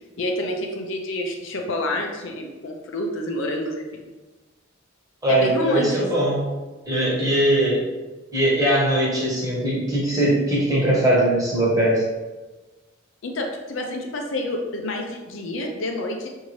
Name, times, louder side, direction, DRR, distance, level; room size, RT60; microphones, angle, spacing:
voice 1, 0.2-4.0 5.3-6.1 13.2-16.3, left 1 dB, 70° left, 2 dB, 0.5 m, -28 dB
voice 2, 5.2-6.4 6.9-7.8 8.3-12.0, right 1 dB, 15° right, -6 dB, 1.1 m, -20 dB
5.0 x 2.7 x 3.1 m, 1.2 s
head